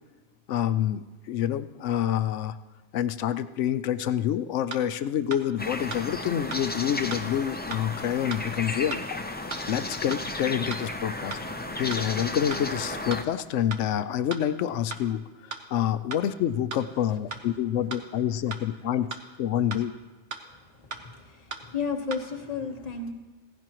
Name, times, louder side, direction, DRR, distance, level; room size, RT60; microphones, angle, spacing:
voice 1, 0.5-2.6 2.9-9.0 9.7-11.4 11.7-19.1 19.4-19.9, left 10 dB, 80° left, 13 dB, 0.9 m, -27 dB
sound 1, 4.7-4.8 5.3-5.4 5.9-6.0 6.5-6.6 7.1-7.2 7.7-7.8 8.3-8.4 8.9-9.0 9.5-9.6 10.1-10.2 10.7-10.8 11.3-11.4 11.9-12.0 12.5-12.6 13.1-13.2 13.7-13.8 14.3-14.4 14.9-15.0 15.5-15.6 16.1-16.2 16.7-16.8 17.3-17.4 17.9-18.0 18.5-18.6 19.1-19.2 19.7-19.8 20.3-20.4 20.9-21.0 21.5-21.6 22.1-22.2, right 5 dB, 70° right, 1.2 m, -36 dB
sound 2, 5.6-13.2, left 2 dB, 15° left, 0.4 m, -34 dB
voice 2, 21.0-23.1, left 5 dB, 35° left, 3 dB, 1.2 m, -32 dB
16.5 x 15.5 x 3.0 m, 1.2 s
omnidirectional pair, 1.2 m